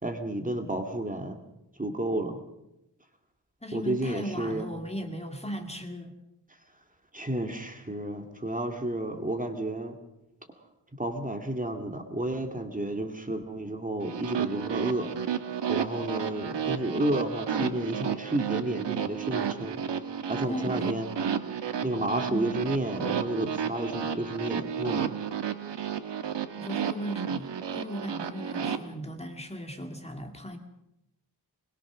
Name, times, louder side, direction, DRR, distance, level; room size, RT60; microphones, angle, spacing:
voice 1, 0.0-1.4 1.8-2.4 3.7-4.7 7.1-10.0 11.0-15.1 15.7-19.8 20.3-21.1 21.8-25.1, right 1 dB, 20° right, 5 dB, 2.2 m, -31 dB
voice 2, 3.6-6.1 20.5-21.0 22.3-22.6 26.6-30.6, equal, 15° left, 5 dB, 2.2 m, -37 dB
sound 1, 14.0-28.8, right 7 dB, 90° right, 1.4 m, -32 dB
22.0 x 21.5 x 6.2 m, 0.87 s
wide cardioid pair, 110°, 41 cm